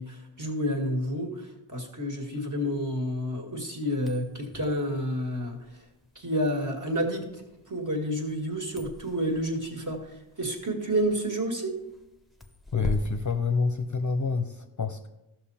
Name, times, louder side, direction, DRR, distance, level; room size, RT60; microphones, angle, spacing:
voice 1, 0.0-5.8 6.2-7.2 7.7-11.7, equal, 35° right, 2 dB, 2.1 m, -30 dB
sound 1, 3.9-14.4, left 2 dB, ahead, 0.8 m, -43 dB
voice 2, 12.7-15.1, left 4 dB, 40° left, 8 dB, 0.7 m, -27 dB
14.0 x 6.1 x 4.3 m, 0.92 s
wide cardioid pair, 90°, 50 cm